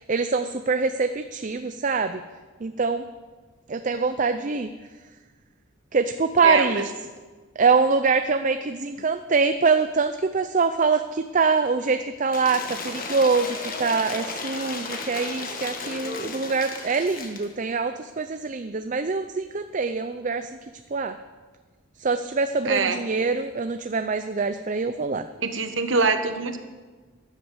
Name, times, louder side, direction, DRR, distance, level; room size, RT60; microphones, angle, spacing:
voice 1, 0.1-2.2 2.6-3.0 3.7-4.7 5.9-6.8 7.6-20.5 20.9-21.1 22.0-25.2, right 4 dB, 40° right, 9 dB, 0.5 m, -24 dB
voice 2, 6.4-6.8 22.6-23.0 25.4-26.6, right 4 dB, 70° right, 8 dB, 1.3 m, -24 dB
Cheering / Applause / Crowd, 12.3-17.5, left 3 dB, 45° left, 1.5 m, -34 dB
13.0 x 11.0 x 7.1 m, 1.4 s
head